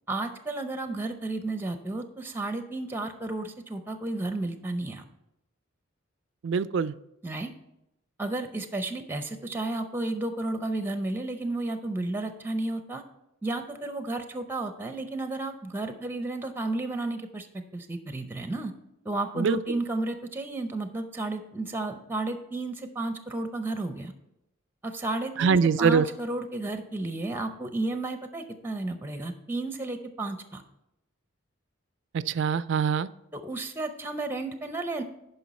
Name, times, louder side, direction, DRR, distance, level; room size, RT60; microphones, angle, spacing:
voice 1, 0.1-5.0 7.2-7.5 8.2-13.0 13.4-17.5 17.7-18.7 19.0-24.1 24.8-30.6 33.3-35.0, right 2 dB, 10° right, 8 dB, 0.6 m, -32 dB
voice 2, 6.4-7.0 19.4-19.8 25.4-26.1 32.1-33.1, right 6 dB, 60° right, 17 dB, 0.3 m, -24 dB
10.0 x 5.4 x 4.2 m, 0.85 s
head